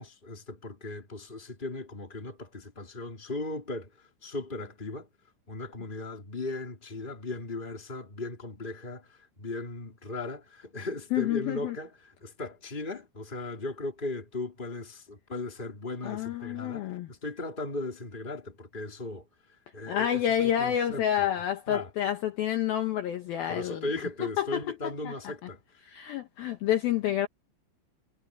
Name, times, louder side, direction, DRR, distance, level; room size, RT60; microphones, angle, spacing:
voice 1, 0.0-5.1 5.5-11.9 12.2-19.3 19.7-21.3 21.7-21.9 23.5-25.8, left 2 dB, 10° left, 2.7 m, -37 dB
voice 2, 11.1-11.8 16.0-17.1 19.9-23.9 24.2-25.1 25.8-27.3, left 11 dB, 70° left, 2.5 m, -29 dB
omnidirectional pair, 5.4 m